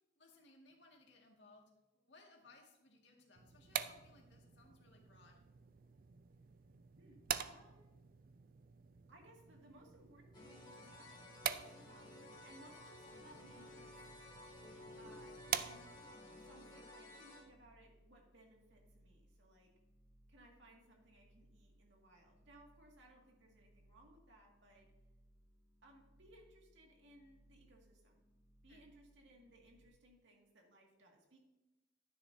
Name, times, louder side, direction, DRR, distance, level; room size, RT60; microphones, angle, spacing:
voice 1, 0.2-1.7 2.0-5.4 12.2-12.4 28.7-28.8, left 2 dB, 65° left, 0 dB, 2.0 m, -64 dB
sound 1, 3.4-16.2, right 9 dB, 50° right, 0.4 m, -47 dB
voice 2, 7.0-8.0 9.1-14.1 15.0-16.0 16.3-19.7 20.3-24.9 25.8-28.3 28.6-31.4, right 1 dB, 70° right, 0 dB, 2.1 m, -64 dB
sound 2, 10.3-17.4, left 2 dB, 25° left, 2.4 m, -55 dB
sound 3, 13.1-29.9, equal, 15° right, 1.5 m, -69 dB
11.0 x 9.8 x 2.7 m, 1.0 s
head